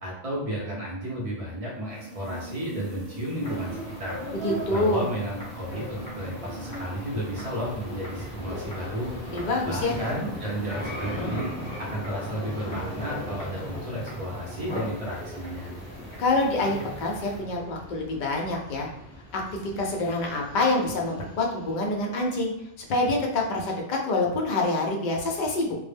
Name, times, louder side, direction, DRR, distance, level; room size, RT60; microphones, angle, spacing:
voice 1, 0.0-4.2 4.7-9.1 9.6-11.5 11.8-15.7, equal, 40° right, -3 dB, 0.5 m, -33 dB
sound 1, 1.1-10.8, right 2 dB, 80° right, 1.1 m, -44 dB
sound 2, 3.4-17.4, equal, 25° left, 0.8 m, -38 dB
voice 2, 4.4-5.0 9.3-9.9 16.2-18.9 19.3-19.4 19.8-22.5 22.9-25.8, left 2 dB, 60° left, 0 dB, 0.5 m, -26 dB
Vehicle, 6.6-22.8, left 1 dB, 5° left, 0.5 m, -42 dB
2.1 x 2.0 x 3.3 m, 0.77 s
omnidirectional pair, 1.3 m